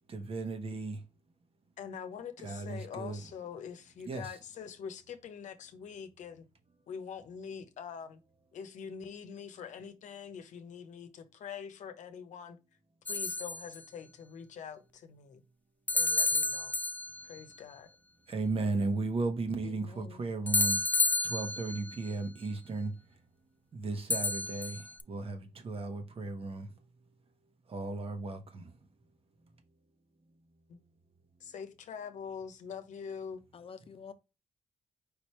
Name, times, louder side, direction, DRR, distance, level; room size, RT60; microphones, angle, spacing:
voice 1, 0.1-1.0 2.4-3.2 4.0-4.3 18.3-20.8 21.2-22.9 23.7-26.7 27.7-28.7, right 3 dB, 50° right, 1.2 m, -35 dB
voice 2, 1.8-6.5 6.9-8.2 8.5-12.6 13.1-15.4 15.9-16.7 17.2-17.9 30.7-30.8 31.4-33.4, left 7 dB, 75° left, 0.9 m, -44 dB
sound 1, 13.1-13.8 15.9-17.4 20.5-22.0 24.1-25.0, left 2 dB, 15° left, 0.3 m, -30 dB
voice 3, 19.6-20.2 33.5-34.1, left 6 dB, 45° left, 0.7 m, -49 dB
5.0 x 3.2 x 3.1 m
cardioid pair, 85°, 13 cm